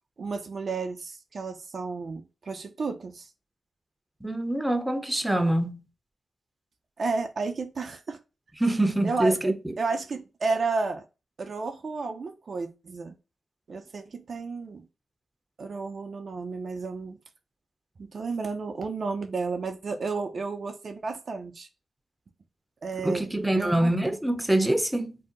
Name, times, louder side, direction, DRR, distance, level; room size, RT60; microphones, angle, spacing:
voice 1, 0.2-3.3 7.0-8.2 9.0-11.0 11.4-13.1 13.7-14.8 15.6-17.2 18.0-21.7 22.8-23.3 23.5-23.9, right 4 dB, 60° right, 0.4 m, -32 dB
voice 2, 4.2-5.7 8.6-9.5 23.0-25.2, right 1 dB, 10° right, 0.6 m, -25 dB
2.6 x 2.0 x 3.7 m
supercardioid pair, 40°, 0 cm